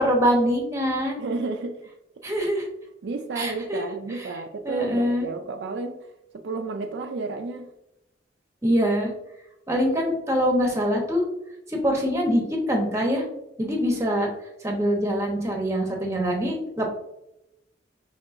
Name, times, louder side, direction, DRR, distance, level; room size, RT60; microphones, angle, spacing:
voice 1, 0.0-1.3 2.2-2.7 3.3-3.9 4.2-4.3 4.6-5.2 8.6-9.1 9.7-11.2 11.7-13.2 13.6-14.3 14.6-16.9, equal, 15° right, 1 dB, 1.0 m, -24 dB
voice 2, 1.2-1.8 3.0-5.9 6.3-7.7, right 3 dB, 70° right, 5 dB, 0.4 m, -31 dB
5.4 x 3.2 x 2.5 m, 0.85 s
head